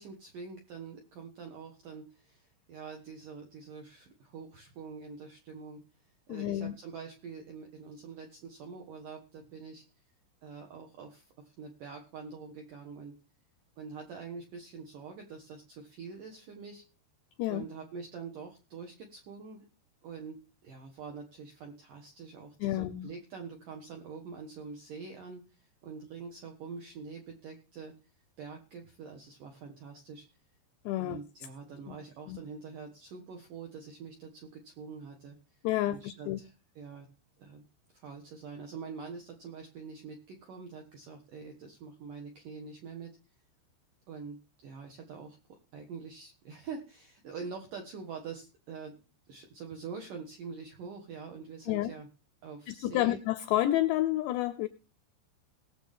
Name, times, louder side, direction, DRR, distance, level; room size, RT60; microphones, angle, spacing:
voice 1, 0.0-5.8 6.3-9.8 10.4-13.1 13.8-16.8 17.5-19.7 20.0-27.9 28.4-30.3 31.0-35.4 35.9-37.1 37.4-37.6 37.9-43.2 44.1-45.4 45.7-48.9 49.3-52.1 52.4-53.2, right 5 dB, 60° right, 3 dB, 2.4 m, -45 dB
voice 2, 6.3-6.8 17.4-17.6 22.6-23.1 30.9-31.2 31.9-32.0 32.3-32.4 35.6-36.4 51.7-51.9 52.7-54.7, left 15 dB, 80° left, 14 dB, 2.5 m, -30 dB
19.5 x 7.5 x 3.7 m, 0.33 s
omnidirectional pair, 5.6 m